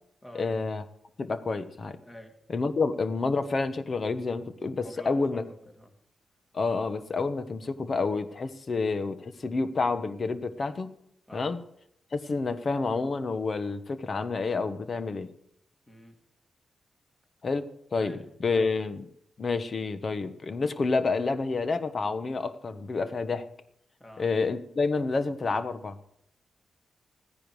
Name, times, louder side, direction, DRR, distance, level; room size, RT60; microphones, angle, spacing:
voice 1, 0.3-0.8 1.2-2.0 2.5-5.4 6.5-10.9 11.3-11.6 12.1-15.3 17.4-19.1 19.4-23.5 24.2-26.0, left 4 dB, 50° left, 12 dB, 1.2 m, -29 dB
voice 2, 2.0-2.3 4.8-5.9 11.3-11.5 15.9-16.2 18.0-18.2 24.0-24.3, left 1 dB, 20° left, 4 dB, 2.4 m, -47 dB
14.0 x 10.0 x 4.8 m, 0.73 s
supercardioid pair, 50°, 0 cm